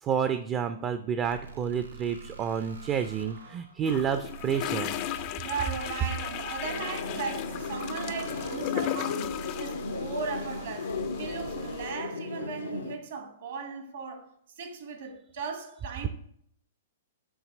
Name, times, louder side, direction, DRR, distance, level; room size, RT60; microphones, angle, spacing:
voice 1, 0.0-4.9, right 7 dB, 30° right, 0.4 m, -29 dB
sound 1, 1.2-11.9, right 6 dB, 90° right, 0.6 m, -46 dB
sound 2, 3.9-11.9, left 12 dB, 40° left, 0.3 m, -36 dB
voice 2, 5.4-16.1, right 5 dB, 70° right, 1.3 m, -37 dB
sound 3, 6.6-13.0, left 4 dB, 90° left, 0.6 m, -36 dB
7.2 x 2.8 x 5.1 m
hypercardioid pair, 120°, 0 cm